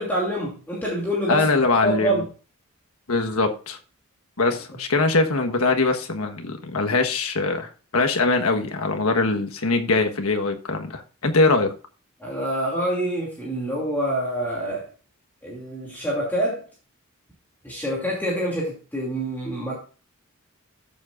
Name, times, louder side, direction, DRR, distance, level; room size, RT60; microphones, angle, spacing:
voice 1, 0.0-1.4 1.8-2.2 12.2-14.8 15.4-16.6 17.6-19.7, right 1 dB, 10° left, -4 dB, 2.6 m, -26 dB
voice 2, 1.3-2.2 3.1-3.8 4.4-11.7, left 3 dB, 75° left, 5 dB, 1.3 m, -22 dB
14.0 x 7.3 x 2.5 m, 0.36 s
head